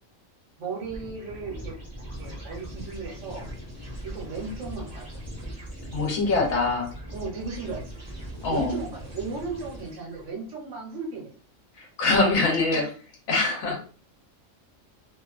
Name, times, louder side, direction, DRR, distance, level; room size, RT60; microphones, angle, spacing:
voice 1, 0.6-1.7 2.2-3.4 4.0-5.1 7.1-8.0 8.5-11.3 12.4-12.9 13.6-13.8, right 4 dB, 65° right, -1 dB, 1.1 m, -36 dB
sound 1, 0.8-10.3, equal, 15° right, 0.7 m, -40 dB
voice 2, 5.9-6.9 8.4-8.8 11.8-12.8 13.3-13.8, left 3 dB, 80° left, 0 dB, 1.2 m, -23 dB
2.9 x 2.2 x 2.4 m, 0.40 s
omnidirectional pair, 1.4 m